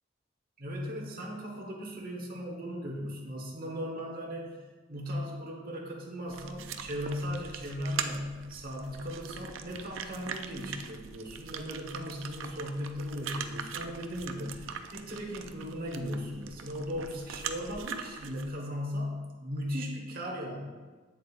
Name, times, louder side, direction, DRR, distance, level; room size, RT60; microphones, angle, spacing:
voice 1, 0.6-4.6 4.9-20.6, equal, 50° right, -1 dB, 1.2 m, -37 dB
sound 1, 6.3-18.5, right 7 dB, 70° right, 0.5 m, -41 dB
8.5 x 7.6 x 2.5 m, 1.3 s
head